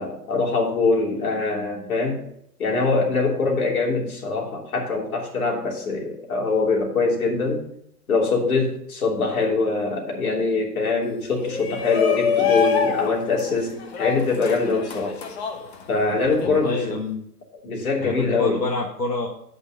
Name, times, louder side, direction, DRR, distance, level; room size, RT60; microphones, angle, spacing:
voice 1, 0.0-2.2 2.6-7.6 8.1-15.2 15.9-17.0 17.6-18.6, left 3 dB, 60° left, -1 dB, 3.4 m, -23 dB
Shout, 11.3-16.5, left 6 dB, 40° left, 1.2 m, -25 dB
voice 2, 16.4-17.2 18.0-19.3, left 3 dB, 85° left, -1 dB, 1.9 m, -27 dB
8.4 x 5.5 x 6.4 m, 0.73 s
hypercardioid pair, 140°, 48 cm